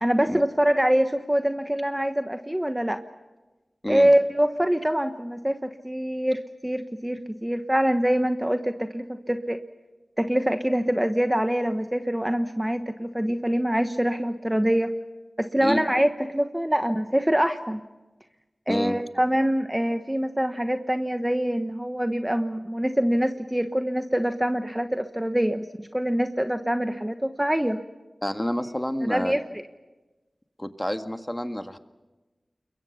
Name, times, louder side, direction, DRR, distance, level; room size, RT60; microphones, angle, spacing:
voice 1, 0.0-3.0 3.9-9.6 10.2-14.9 15.4-17.8 18.7-27.8 29.0-29.6, equal, 10° right, 7 dB, 1.2 m, -24 dB
voice 2, 28.2-29.3 30.6-31.8, equal, 10° left, 8 dB, 1.8 m, -28 dB
29.0 x 22.5 x 5.8 m, 1.2 s
cardioid pair, 45°, 0 cm